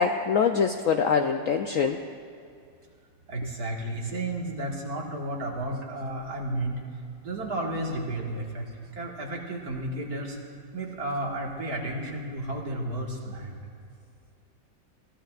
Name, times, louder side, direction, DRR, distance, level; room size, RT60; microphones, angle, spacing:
voice 1, 0.0-2.0, left 6 dB, 85° left, 5 dB, 0.7 m, -24 dB
voice 2, 3.3-6.7 7.2-8.7 9.0-10.4 10.7-13.6, right 1 dB, 55° right, -1 dB, 2.3 m, -32 dB
23.0 x 15.5 x 2.5 m, 2.4 s
omnidirectional pair, 2.0 m